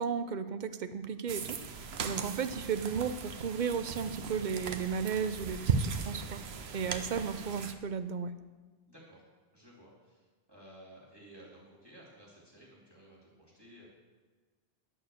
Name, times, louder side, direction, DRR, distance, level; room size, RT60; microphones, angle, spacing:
voice 1, 0.0-6.4 6.7-8.3, right 6 dB, 55° right, 11 dB, 0.6 m, -34 dB
sound 1, 1.3-7.7, right 5 dB, 85° right, 1.1 m, -37 dB
voice 2, 8.9-9.2 9.5-13.9, right 1 dB, 25° right, -6 dB, 2.5 m, -55 dB
11.0 x 6.4 x 6.8 m, 1.4 s
omnidirectional pair, 1.0 m